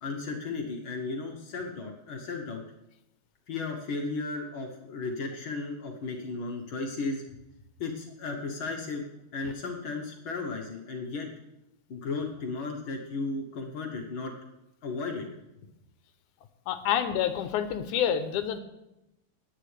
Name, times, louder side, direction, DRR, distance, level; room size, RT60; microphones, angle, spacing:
voice 1, 0.0-2.6 3.5-7.2 7.8-9.0 9.3-11.3 11.9-14.3 14.8-15.3, left 3 dB, 55° left, 1 dB, 1.5 m, -35 dB
voice 2, 16.7-18.6, left 9 dB, 85° left, 10 dB, 2.2 m, -28 dB
18.5 x 9.5 x 3.3 m, 0.91 s
omnidirectional pair, 3.4 m